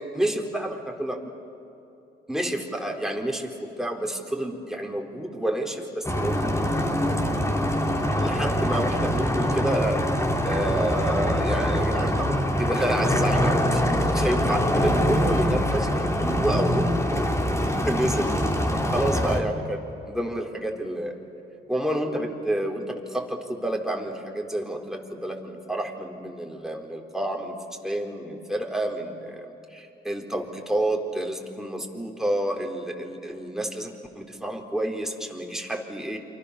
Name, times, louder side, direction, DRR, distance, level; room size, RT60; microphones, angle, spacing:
voice 1, 0.1-1.3 2.3-6.6 8.2-10.1 10.4-16.9 17.4-18.4 18.9-21.2 21.7-36.2, right 1 dB, ahead, 1 dB, 4.2 m, -29 dB
sound 1, 6.0-19.4, equal, 15° left, 3.3 m, -24 dB
29.0 x 24.5 x 6.8 m, 2.9 s
supercardioid pair, 60°, 19 cm